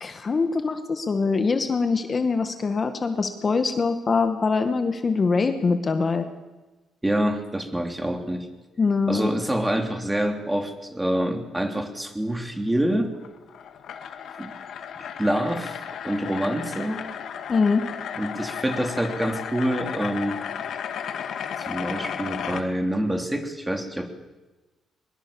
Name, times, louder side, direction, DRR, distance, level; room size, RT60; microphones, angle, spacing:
voice 1, 0.0-6.2 8.8-9.3 17.5-17.8, left 4 dB, 35° left, 7 dB, 1.7 m, -23 dB
voice 2, 7.0-8.5 9.1-13.1 14.4-14.5 15.0-17.1 18.2-20.4 21.6-24.1, right 1 dB, 10° right, 5 dB, 3.1 m, -26 dB
sound 1, 13.1-22.6, left 8 dB, 70° left, 1.9 m, -34 dB
22.0 x 21.0 x 7.2 m, 1.2 s
cardioid pair, 90°, 0 cm